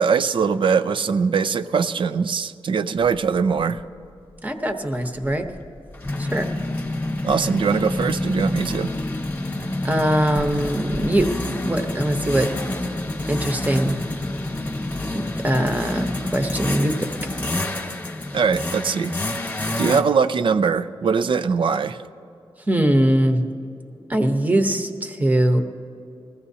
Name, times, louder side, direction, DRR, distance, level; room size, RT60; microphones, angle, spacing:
voice 1, 0.0-3.8 7.2-8.9 18.3-19.1 19.8-22.0, right 5 dB, 60° right, 11 dB, 0.5 m, -21 dB
sound 1, 3.1-3.2 3.6-3.8 5.0-20.0, left 1 dB, 20° left, 1.2 m, -28 dB
voice 2, 4.4-5.4 6.2-6.5 9.8-12.5 13.3-14.0 15.1-17.1 22.7-23.4 24.1-25.6, right 1 dB, 15° right, 5 dB, 0.9 m, -21 dB
20.5 x 15.0 x 2.8 m, 2.7 s
wide cardioid pair, 125°, 9 cm